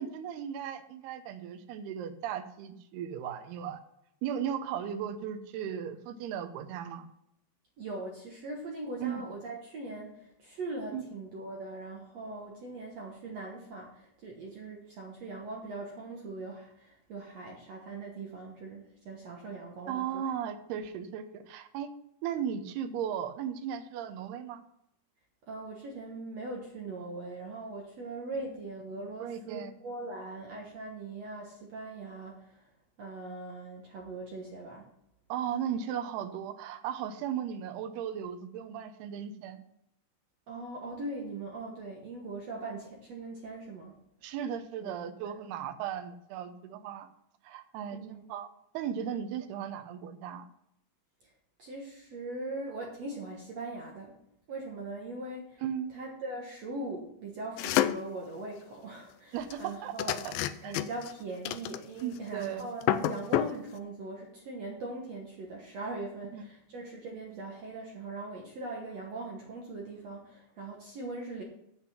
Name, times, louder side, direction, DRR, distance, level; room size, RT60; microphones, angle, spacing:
voice 1, 0.0-3.8 4.2-7.1 9.0-9.2 10.9-11.0 19.9-21.9 22.2-24.6 29.2-29.7 35.3-39.6 44.2-47.1 47.4-48.5 48.7-50.5 55.6-55.9 59.3-59.9 60.3-60.4 60.6-60.7 62.0-62.7 66.3-66.5, right 9 dB, 80° right, 8 dB, 2.8 m, -36 dB
voice 2, 7.8-20.3 25.5-32.6 33.0-34.9 40.5-44.0 44.8-44.9 45.2-45.3 47.9-48.2 51.6-54.2 54.5-55.6 55.9-60.3 60.6-71.4, right 2 dB, 60° right, -1 dB, 1.8 m, -41 dB
sound 1, 57.6-58.1 59.5-59.6 60.0-61.1 61.4-62.2 62.4-62.5 62.8-63.6, left 13 dB, 85° left, 2.0 m, -29 dB
8.7 x 8.0 x 5.8 m, 0.75 s
omnidirectional pair, 4.6 m